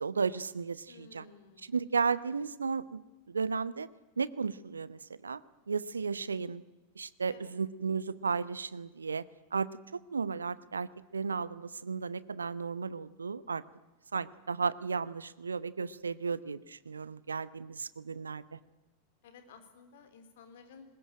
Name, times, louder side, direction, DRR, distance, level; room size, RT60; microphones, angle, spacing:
voice 1, 0.0-1.2 1.7-3.9 4.2-5.4 5.7-6.6 7.0-9.2 9.5-13.6 14.1-18.6, right 5 dB, 75° right, 18 dB, 0.8 m, -34 dB
voice 2, 0.9-1.7 7.3-7.5 19.2-20.8, left 5 dB, 55° left, 8 dB, 3.8 m, -55 dB
21.5 x 20.5 x 8.9 m, 1.1 s
figure-of-eight pair, 90°, 0 cm